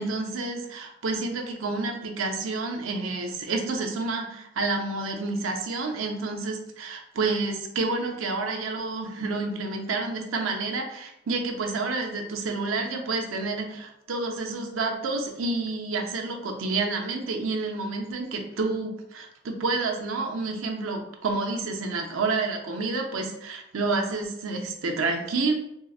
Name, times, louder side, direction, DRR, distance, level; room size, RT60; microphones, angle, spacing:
voice 1, 0.0-25.5, right 3 dB, 85° right, 2 dB, 0.6 m, -29 dB
4.6 x 2.0 x 2.3 m, 0.80 s
head